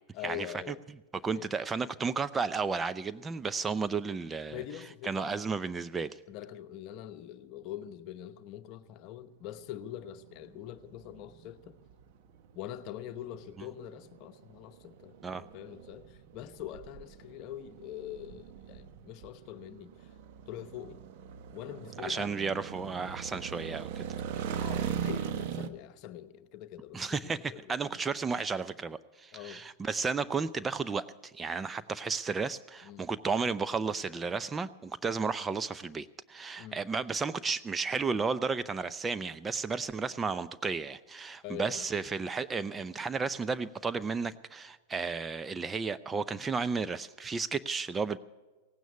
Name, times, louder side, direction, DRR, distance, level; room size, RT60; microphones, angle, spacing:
voice 1, 0.1-0.8 1.2-1.5 4.5-5.4 6.3-11.8 12.5-20.1 20.5-21.0 21.5-22.3 24.2-28.0 29.3-29.6 32.8-33.1 36.6-36.8 41.4-41.9, left 11 dB, 50° left, 0.9 m, -44 dB
voice 2, 1.2-4.6 5.0-6.2 15.2-15.4 22.0-24.1 26.9-48.2, right 4 dB, 15° right, 0.5 m, -33 dB
sound 1, 9.6-25.7, right 8 dB, 55° right, 1.0 m, -40 dB
17.0 x 9.2 x 8.3 m
hypercardioid pair, 105°, 0 cm